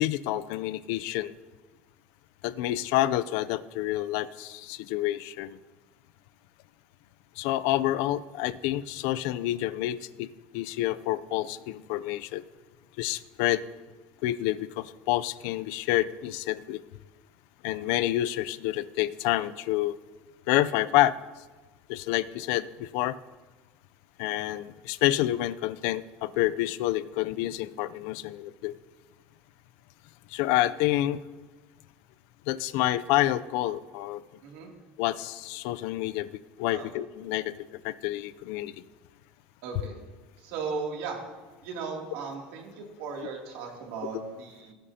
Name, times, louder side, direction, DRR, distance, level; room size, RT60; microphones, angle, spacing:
voice 1, 0.0-1.3 2.4-5.6 7.4-10.3 10.5-12.4 13.0-13.6 14.2-16.8 17.6-20.0 20.5-21.2 21.9-23.2 24.2-28.7 30.3-31.2 32.5-34.2 35.0-36.3 36.6-37.5 37.8-38.8, left 15 dB, 75° left, 17 dB, 0.4 m, -28 dB
voice 2, 39.6-40.0 40.4-41.2 41.6-44.7, right 5 dB, 75° right, 0 dB, 2.7 m, -36 dB
18.0 x 10.5 x 2.8 m, 1.3 s
cardioid pair, 140°, 4 cm